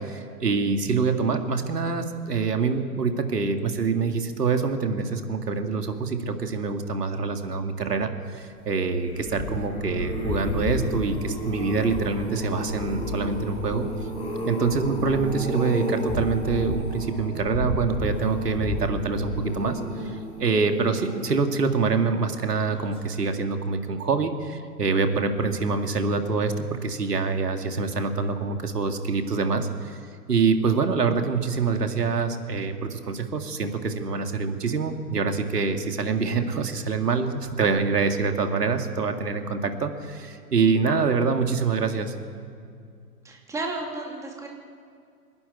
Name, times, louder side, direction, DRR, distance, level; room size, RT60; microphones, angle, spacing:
voice 1, 0.0-13.9 14.5-30.0 30.3-42.1, right 4 dB, 75° right, 6 dB, 2.2 m, -25 dB
sound 1, 8.9-22.2 22.7-23.1 23.3-23.4, left 1 dB, 10° left, 4.8 m, -32 dB
voice 2, 43.2-44.5, right 2 dB, 5° right, 0 dB, 2.5 m, -33 dB
25.5 x 11.5 x 9.2 m, 2.3 s
figure-of-eight pair, 130°, 47 cm